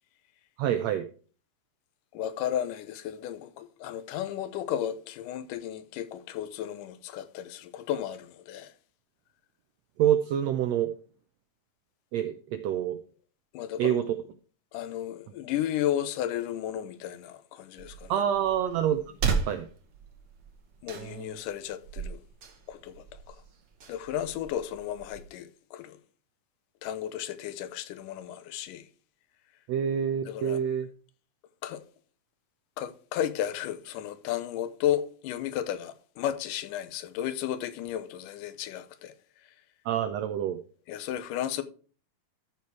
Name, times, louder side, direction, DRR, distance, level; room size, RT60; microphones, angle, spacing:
voice 1, 0.6-1.1 10.0-10.9 12.1-13.0 13.8-14.1 18.1-19.0 19.5-19.7 21.0-21.4 29.7-30.9 39.8-40.6, right 10 dB, 80° right, 1.5 m, -27 dB
voice 2, 2.1-8.7 13.5-14.0 14.7-18.2 20.8-22.2 22.7-23.4 23.9-26.0 26.8-28.9 30.3-30.6 31.6-31.8 32.8-39.1 40.9-41.6, left 11 dB, 80° left, 2.3 m, -33 dB
sound 1, 17.8-25.2, right 5 dB, 60° right, 1.3 m, -36 dB
13.5 x 4.5 x 4.7 m
omnidirectional pair, 3.7 m